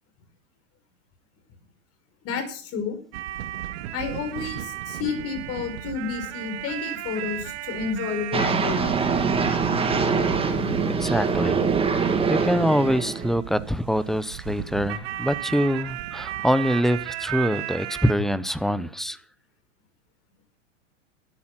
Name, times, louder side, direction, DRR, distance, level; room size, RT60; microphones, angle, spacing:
voice 1, 2.2-3.0 3.9-9.1, left 6 dB, 35° left, 5.2 m, -31 dB
sound 1, 3.1-18.1, right 13 dB, 55° right, 1.8 m, -34 dB
sound 2, 8.3-13.4, right 4 dB, 15° right, 2.1 m, -24 dB
voice 2, 11.0-11.6 12.3-19.2, equal, ahead, 0.7 m, -24 dB
13.5 x 12.5 x 6.0 m
hypercardioid pair, 120°, 38 cm